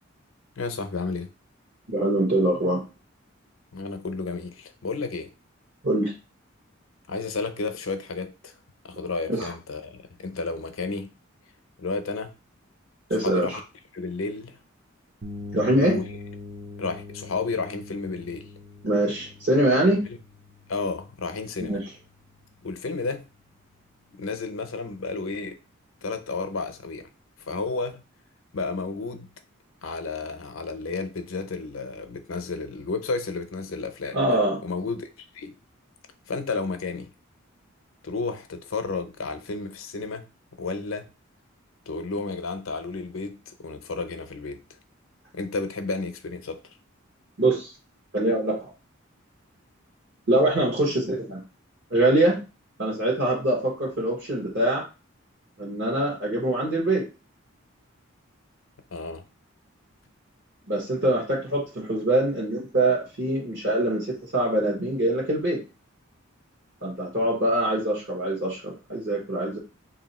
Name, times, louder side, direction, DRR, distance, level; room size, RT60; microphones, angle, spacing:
voice 1, 0.6-1.3 3.7-5.3 7.1-8.5 8.8-11.1 11.8-12.4 13.2-13.6 13.9-14.6 15.8-16.0 16.8-18.5 20.7-21.8 22.6-23.2 24.1-25.6 26.0-27.1 27.5-28.0 28.5-29.3 29.8-34.2 34.6-35.1 35.3-35.6 36.3-37.1 38.0-40.3 40.6-41.1 41.9-44.6 45.3-46.6 58.9-59.2, left 3 dB, 75° left, 0.6 m, -32 dB
voice 2, 1.9-2.8 5.8-6.1 9.3-9.5 13.1-13.6 15.5-16.0 18.8-20.1 21.6-21.9 34.1-34.6 47.4-47.7 48.1-48.7 50.3-51.4 51.9-52.4 52.8-54.9 55.6-57.1 60.7-65.6 66.8-69.6, right 1 dB, 60° right, 1.1 m, -24 dB
sound 1, 15.2-22.9, left 3 dB, 40° right, 0.6 m, -43 dB
3.4 x 2.7 x 4.1 m
head